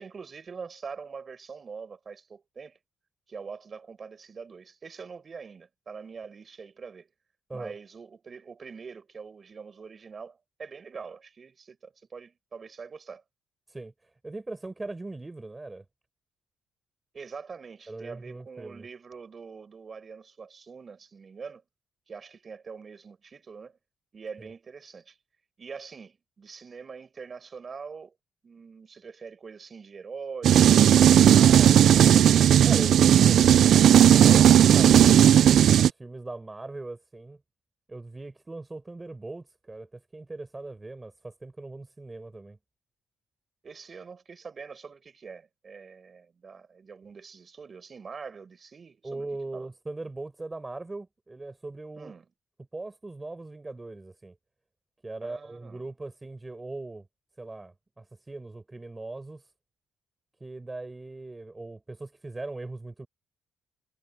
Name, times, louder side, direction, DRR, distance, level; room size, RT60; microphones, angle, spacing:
voice 1, 0.0-2.8 3.3-7.1 7.5-13.2 17.1-21.6 22.1-23.8 24.1-25.2 25.6-28.1 28.4-32.2 32.5-32.7 43.6-49.3 49.5-49.7 52.0-52.2 55.2-55.8, right 5 dB, 30° right, 6.5 m, -44 dB
voice 2, 13.7-15.8 17.9-18.9 24.4-24.5 32.6-37.4 37.9-42.6 49.0-52.1 52.7-54.4 55.0-57.1 57.4-59.5 60.4-63.1, right 2 dB, 15° right, 4.6 m, -40 dB
sound 1, 30.4-35.9, right 10 dB, 60° right, 0.3 m, -16 dB
cardioid pair, 140°, 0 cm